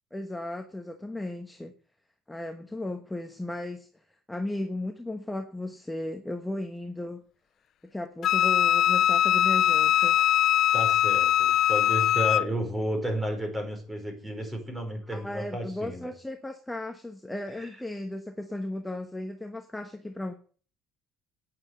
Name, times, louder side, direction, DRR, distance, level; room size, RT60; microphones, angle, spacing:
voice 1, 0.1-1.7 2.3-3.9 4.3-7.2 7.9-10.2 15.1-20.3, left 1 dB, 5° left, 5 dB, 1.2 m, -35 dB
Wind instrument woodwind instrument, 8.2-12.5, left 11 dB, 55° left, 0.5 m, -22 dB
voice 2, 10.7-16.1 17.5-17.7, equal, 10° right, 5 dB, 4.9 m, -32 dB
9.7 x 9.4 x 8.1 m, 0.43 s
cardioid pair, 110°, 0 cm